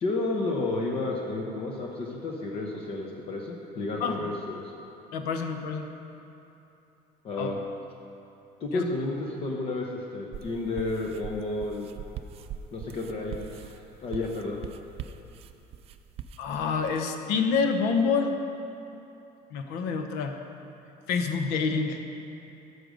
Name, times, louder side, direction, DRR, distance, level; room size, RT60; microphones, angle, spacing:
voice 1, 0.0-4.6 7.2-7.6 8.6-11.9 12.7-13.7 14.0-14.6, left 2 dB, 35° left, 0 dB, 0.8 m, -31 dB
voice 2, 5.1-5.8 7.4-7.5 8.7-8.9 16.4-18.3 19.5-20.4 21.1-22.0, left 5 dB, 80° left, 6 dB, 0.8 m, -27 dB
sound 1, 10.3-17.0, right 8 dB, 40° right, 0.4 m, -42 dB
11.0 x 6.5 x 5.2 m, 2.9 s
cardioid pair, 175°, 16 cm